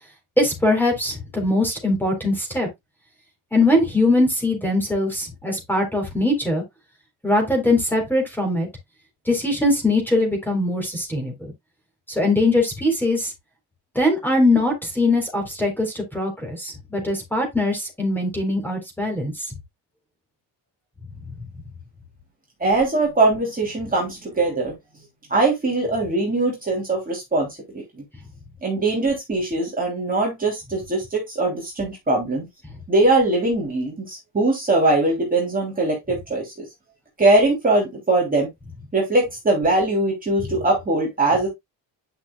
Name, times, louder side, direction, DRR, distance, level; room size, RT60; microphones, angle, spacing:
voice 1, 0.4-2.7 3.5-6.6 7.2-8.7 9.3-11.5 12.1-13.3 14.0-19.3, left 2 dB, 5° left, 3.7 m, -21 dB
voice 2, 22.6-24.7 25.3-27.5 27.7-27.8 28.6-32.5 32.9-36.7 37.2-38.5 38.9-41.5, right 2 dB, 20° right, 3.0 m, -21 dB
10.0 x 5.9 x 2.3 m
cardioid pair, 150°, 44 cm